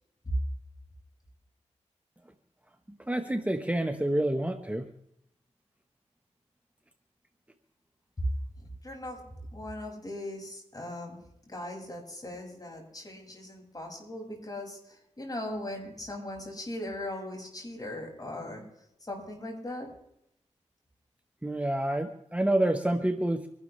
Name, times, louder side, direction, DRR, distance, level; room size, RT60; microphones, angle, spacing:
voice 1, 3.1-4.9 21.4-23.5, right 1 dB, 10° right, 6 dB, 1.4 m, -28 dB
voice 2, 8.6-9.2 9.5-11.2 11.5-18.6 19.0-19.9, left 1 dB, 30° left, 0 dB, 6.5 m, -39 dB
25.5 x 12.0 x 3.4 m, 0.78 s
cardioid pair, 50°, 12 cm